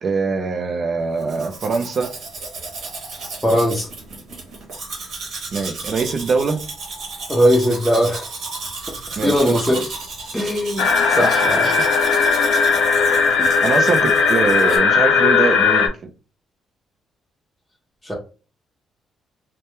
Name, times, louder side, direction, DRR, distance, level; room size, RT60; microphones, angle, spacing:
voice 1, 0.0-2.1 5.5-6.6 9.2-9.8 11.1-11.9 13.6-16.1, right 4 dB, 50° right, 5 dB, 0.5 m, -23 dB
Domestic sounds home sounds, 1.2-14.8, right 3 dB, 65° right, 1.0 m, -33 dB
voice 2, 3.4-3.9 7.3-8.3 9.2-9.8 10.3-11.7 13.4-13.5 18.0-18.1, equal, 5° left, -3 dB, 0.6 m, -19 dB
sound 1, 10.8-15.9, left 5 dB, 85° left, 0.4 m, -17 dB
2.2 x 2.1 x 3.0 m, 0.35 s
cardioid pair, 90°, 0 cm